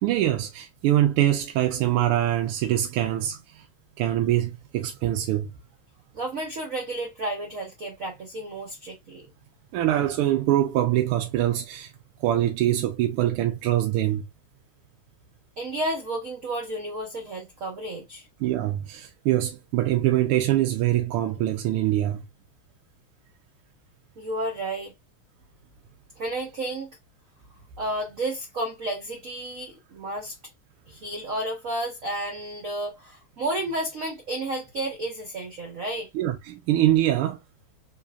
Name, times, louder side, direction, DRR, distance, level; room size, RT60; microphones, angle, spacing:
voice 1, 0.0-3.6 4.0-5.5 9.7-11.9 12.2-14.2 18.4-22.2 36.1-37.4, right 13 dB, 85° right, 1.5 m, -24 dB
voice 2, 6.1-9.2 15.6-18.3 24.2-24.9 26.2-27.0 27.8-30.4 30.9-36.1, right 1 dB, 50° right, 1.1 m, -32 dB
3.9 x 3.2 x 2.3 m
omnidirectional pair, 2.4 m